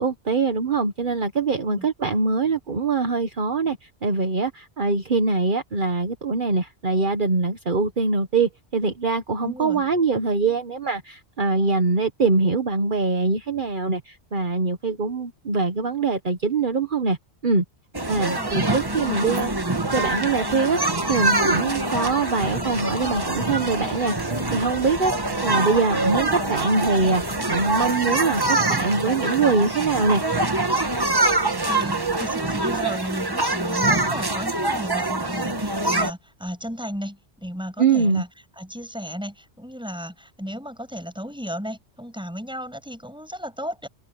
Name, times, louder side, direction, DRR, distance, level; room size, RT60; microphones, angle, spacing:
voice 1, 0.0-17.2 17.4-17.6 18.1-19.5 19.9-27.2 27.5-30.2 37.8-38.2, right 4 dB, 50° right, 1.4 m, -23 dB
voice 2, 9.4-9.8 18.1-18.6 31.7-38.3 38.5-43.9, equal, 5° right, 6.6 m, -34 dB
sound 1, 17.9-27.9, left 3 dB, 65° left, 2.3 m, -38 dB
sound 2, 17.9-36.1, right 2 dB, 20° right, 1.3 m, -25 dB
open air
omnidirectional pair, 1.1 m